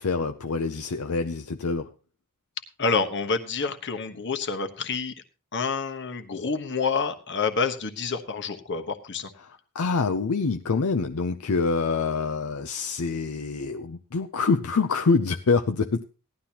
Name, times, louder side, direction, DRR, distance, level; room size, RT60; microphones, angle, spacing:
voice 1, 0.0-1.9 9.7-16.0, left 4 dB, 75° left, 7 dB, 0.6 m, -25 dB
voice 2, 2.8-5.1 5.5-9.3, left 4 dB, 55° left, 7 dB, 1.2 m, -28 dB
17.0 x 11.5 x 2.9 m, 0.33 s
head